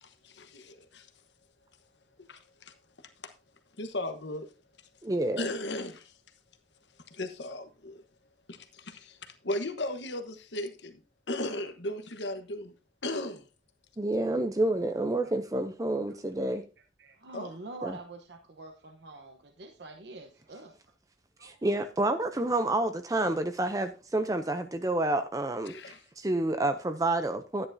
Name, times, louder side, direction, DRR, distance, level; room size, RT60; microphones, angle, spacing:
voice 1, 0.0-1.1 2.3-2.7 3.8-4.4 5.4-6.1 7.1-8.0 8.5-11.0 11.3-12.7 13.0-13.4 17.3-17.5 25.7-26.0, left 1 dB, 80° left, 1.2 m, -36 dB
voice 2, 5.0-5.5 14.0-16.6 17.8-18.0 21.4-25.8 26.2-27.7, right 2 dB, 20° right, 0.5 m, -29 dB
voice 3, 17.0-20.7 21.4-21.8, right 2 dB, 70° right, 1.0 m, -45 dB
11.5 x 9.9 x 2.7 m
head